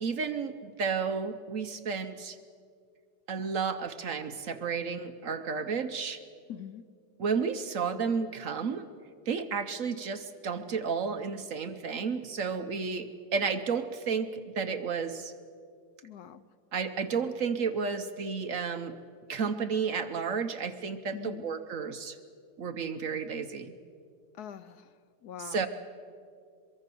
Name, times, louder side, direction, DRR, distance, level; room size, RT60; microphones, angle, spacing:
voice 1, 0.0-2.4 3.3-6.2 7.2-8.9 9.3-15.3 16.7-19.0 19.3-22.2 22.6-23.7 25.4-25.7, right 5 dB, 55° right, 9 dB, 1.1 m, -32 dB
voice 2, 6.5-6.8 16.0-16.4 21.1-21.4 24.4-24.9 25.2-25.7, left 9 dB, 65° left, 13 dB, 1.2 m, -43 dB
23.5 x 22.0 x 6.9 m, 2.3 s
omnidirectional pair, 1.9 m